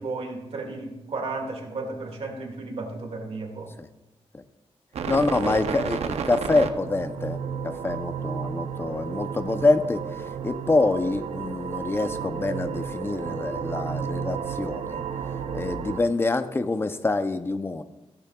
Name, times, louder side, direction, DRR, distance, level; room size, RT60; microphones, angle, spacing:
voice 1, 0.0-3.8 5.1-5.8, right 3 dB, 70° right, 2 dB, 2.0 m, -34 dB
sound 1, 4.9-16.0, right 7 dB, 85° right, 0.6 m, -32 dB
voice 2, 5.1-7.4 7.6-15.0 15.5-17.8, left 2 dB, 20° left, 10 dB, 0.6 m, -26 dB
16.0 x 10.5 x 2.3 m, 1.0 s
wide cardioid pair, 135°, 11 cm